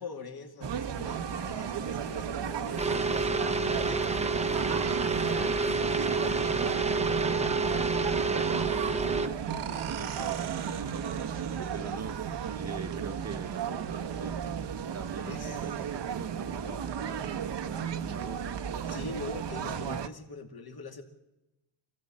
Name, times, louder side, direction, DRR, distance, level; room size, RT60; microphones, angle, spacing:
voice 1, 0.0-4.2 15.3-15.6 18.9-21.0, left 4 dB, 50° left, 5 dB, 2.4 m, -43 dB
sound 1, 0.6-20.1, right 8 dB, 55° right, 1.0 m, -34 dB
sound 2, 2.8-9.3, right 3 dB, 15° right, 0.8 m, -29 dB
voice 2, 4.7-12.2 12.5-14.4 14.9-18.9, right 4 dB, 30° right, 8 dB, 1.1 m, -44 dB
sound 3, 9.5-14.9, right 9 dB, 85° right, 1.7 m, -45 dB
25.5 x 16.0 x 7.5 m, 0.98 s
wide cardioid pair, 140°, 49 cm